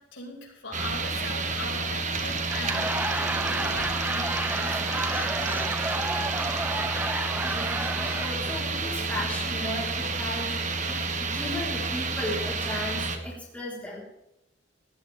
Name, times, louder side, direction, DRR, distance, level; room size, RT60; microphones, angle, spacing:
voice 1, 0.1-5.5, left 3 dB, 90° left, -1 dB, 5.9 m, -40 dB
sound 1, 0.7-13.2, right 3 dB, 40° right, 1.6 m, -30 dB
sound 2, 0.8-11.1, left 1 dB, 55° left, 6.5 m, -46 dB
Laughter / Crowd, 2.3-8.6, right 2 dB, 10° right, 0.9 m, -31 dB
voice 2, 7.4-10.6 11.2-14.0, left 1 dB, 10° left, -4 dB, 4.2 m, -35 dB
18.0 x 15.0 x 3.6 m, 0.84 s
head